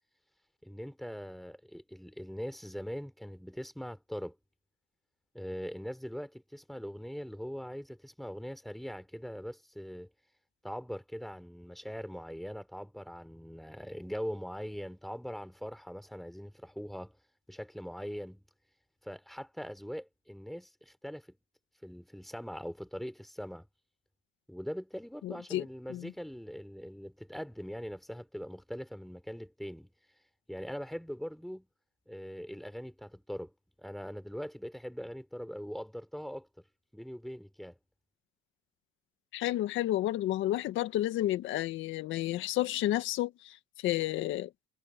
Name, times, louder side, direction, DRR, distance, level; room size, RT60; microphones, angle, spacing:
voice 1, 0.6-4.3 5.3-10.1 10.6-17.2 17.5-18.4 19.0-21.4 21.8-23.7 24.5-29.9 30.5-31.7 32.1-33.5 33.8-36.5 36.9-37.7, equal, ahead, 4.9 m, -41 dB
voice 2, 25.2-26.1 39.3-44.5, left 14 dB, 70° left, 1.7 m, -31 dB
cardioid pair, 125°, 21 cm